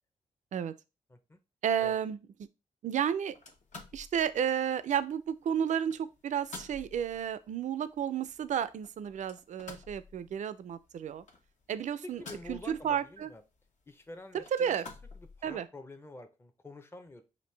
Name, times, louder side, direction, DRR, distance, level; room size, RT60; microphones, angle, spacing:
voice 1, 1.6-2.2 2.8-3.4 3.9-11.2 11.7-12.2 12.5-13.3 14.3-14.9 15.4-15.7, right 8 dB, 65° right, 0.4 m, -32 dB
sound 1, 3.3-15.6, left 4 dB, 60° left, 1.0 m, -53 dB
voice 2, 12.0-13.4 13.9-14.7 15.1-17.2, left 2 dB, 15° left, 0.6 m, -47 dB
5.1 x 2.5 x 3.2 m
cardioid pair, 70°, 14 cm